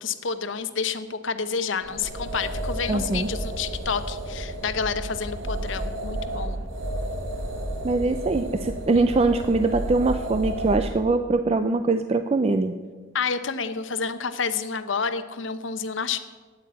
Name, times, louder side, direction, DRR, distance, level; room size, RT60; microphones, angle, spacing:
voice 1, 0.0-6.5 13.1-16.2, left 5 dB, 75° left, 11 dB, 0.8 m, -29 dB
sound 1, 1.8-10.9, right 1 dB, 80° right, 1.5 m, -32 dB
voice 2, 2.9-3.3 7.8-12.7, right 3 dB, 30° right, 9 dB, 0.4 m, -22 dB
8.9 x 8.5 x 9.4 m, 1.4 s
head